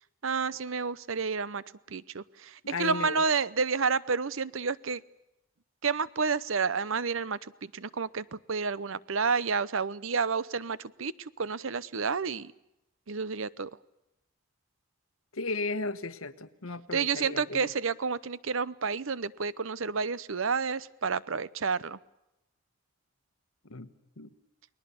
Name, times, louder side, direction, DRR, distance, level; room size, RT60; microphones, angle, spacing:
voice 1, 0.2-5.0 5.8-12.5 13.1-13.7 16.9-22.0, right 5 dB, 75° right, 18 dB, 0.8 m, -30 dB
voice 2, 2.6-3.2 15.3-17.7 23.6-23.9 24.2-24.3, left 3 dB, 90° left, 11 dB, 1.4 m, -35 dB
30.0 x 20.5 x 7.0 m, 0.89 s
head